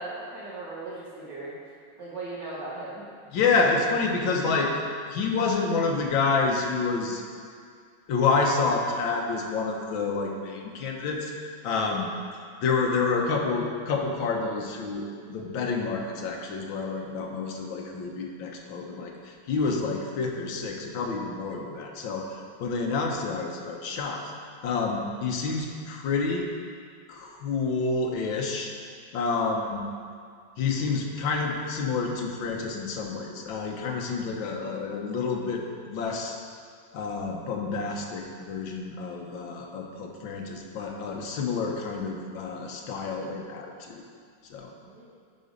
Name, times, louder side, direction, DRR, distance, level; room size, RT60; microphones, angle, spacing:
voice 1, 0.0-1.5 2.0-3.0 40.3-40.5 44.9-45.0, right 2 dB, 60° right, -7 dB, 2.6 m, -38 dB
voice 2, 3.3-4.7 5.1-7.2 8.1-11.3 11.6-12.1 12.6-24.2 24.6-26.5 27.1-28.7 29.1-29.8 30.6-36.4 36.9-44.0 44.5-44.7, left 4 dB, 75° left, 1 dB, 1.7 m, -28 dB
9.8 x 5.2 x 5.2 m, 2.2 s
omnidirectional pair, 2.2 m